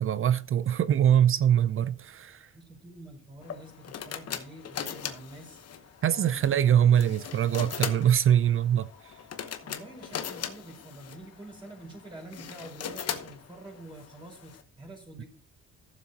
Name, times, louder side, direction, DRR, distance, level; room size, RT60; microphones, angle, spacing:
voice 1, 0.0-2.5 6.0-8.9 15.2-15.3, right 10 dB, 45° right, 0.4 m, -23 dB
voice 2, 2.5-5.6 6.0-6.5 9.6-15.3, right 1 dB, 15° right, 5.0 m, -47 dB
sound 1, 3.4-14.6, left 8 dB, 55° left, 1.0 m, -39 dB
Telephone, 6.0-7.9 8.7-10.6 12.0-12.1 13.7-13.9, left 5 dB, 35° left, 2.6 m, -57 dB
14.0 x 7.3 x 2.8 m
cardioid pair, 90°, 30 cm